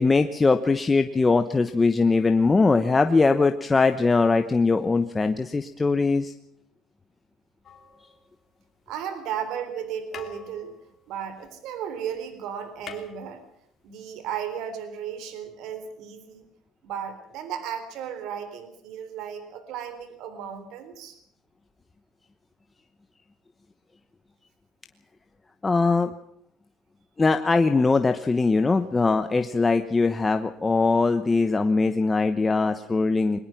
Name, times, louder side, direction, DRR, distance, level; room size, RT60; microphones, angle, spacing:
voice 1, 0.0-6.3 25.6-26.1 27.2-33.4, left 3 dB, 15° left, 8 dB, 1.0 m, -21 dB
sound 1, 7.6-8.8 9.7-9.8 10.1-12.0 12.2-12.3 12.6-14.0 15.1-15.2, left 7 dB, 35° left, 3.3 m, -46 dB
voice 2, 8.9-10.7 11.1-13.4 13.8-16.4 16.8-21.2, right 8 dB, 70° right, 10 dB, 3.6 m, -35 dB
22.0 x 21.0 x 6.0 m, 0.73 s
cardioid pair, 145°, 0 cm